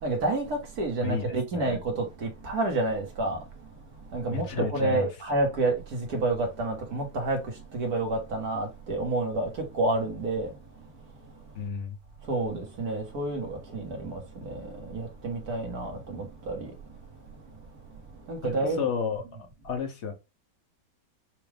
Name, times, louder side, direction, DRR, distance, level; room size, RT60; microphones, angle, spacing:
voice 1, 0.0-3.7 4.1-10.6 12.2-16.8 18.2-18.8, right 2 dB, 55° right, 1.7 m, -29 dB
voice 2, 1.0-1.7 4.3-5.1 11.5-12.0 18.4-19.2 19.6-20.1, left 6 dB, 55° left, 0.8 m, -32 dB
6.0 x 2.5 x 3.3 m
omnidirectional pair, 2.1 m